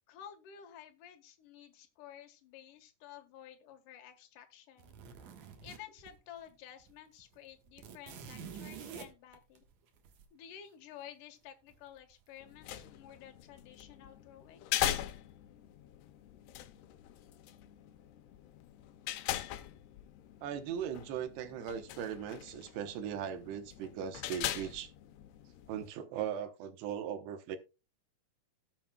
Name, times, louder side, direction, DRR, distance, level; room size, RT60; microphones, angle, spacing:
voice 1, 0.1-5.0 5.6-9.6 10.3-14.7, left 10 dB, 60° left, 2.7 m, -52 dB
sound 1, 4.8-6.5 6.8-6.9 7.2-10.2 11.7-12.2 12.6-12.8, right 6 dB, 60° right, 2.1 m, -48 dB
sound 2, 12.4-25.9, left 13 dB, 80° left, 2.8 m, -41 dB
voice 2, 20.4-24.9 25.7-27.6, right 8 dB, 80° right, 3.1 m, -39 dB
18.5 x 7.4 x 2.3 m
omnidirectional pair, 4.8 m